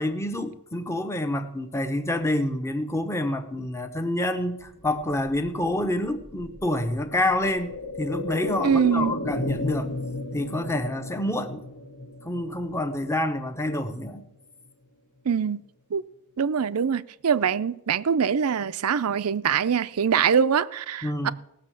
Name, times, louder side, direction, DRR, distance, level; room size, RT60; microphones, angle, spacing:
voice 1, 0.0-9.9 10.3-11.6 12.2-14.2 21.0-21.3, left 1 dB, 10° left, 0.9 m, -27 dB
sound 1, 4.6-14.3 14.6-14.7, left 2 dB, 85° left, 1.9 m, -35 dB
voice 2, 8.6-9.1 15.3-15.6 15.9-16.0 16.4-21.3, right 7 dB, 75° right, 0.5 m, -23 dB
18.0 x 6.5 x 7.5 m
head